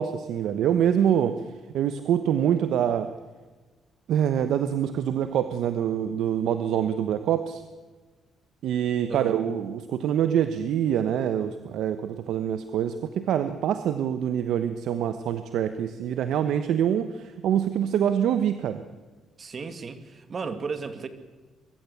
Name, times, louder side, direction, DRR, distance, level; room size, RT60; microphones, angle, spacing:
voice 1, 0.0-1.4 1.7-3.1 4.1-7.6 8.6-18.8, right 9 dB, 80° right, 1.0 m, -25 dB
voice 2, 19.4-21.1, right 5 dB, 45° right, 2.2 m, -34 dB
23.0 x 14.0 x 8.2 m
cardioid pair, 90°, 0 cm